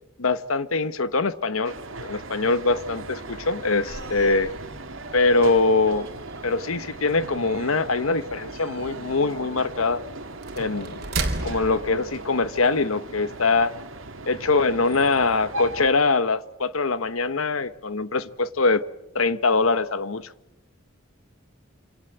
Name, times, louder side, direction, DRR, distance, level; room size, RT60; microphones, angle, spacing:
voice 1, 0.2-1.7 2.0-4.5 5.1-6.1 6.4-10.0 10.6-11.0 11.4-13.7 14.3-18.8 19.1-20.3, left 3 dB, 90° left, 1.1 m, -23 dB
sound 1, 1.6-15.9, right 2 dB, 75° right, 2.3 m, -38 dB
sound 2, 3.9-12.8, right 3 dB, 50° right, 3.6 m, -37 dB
27.0 x 26.5 x 8.0 m
head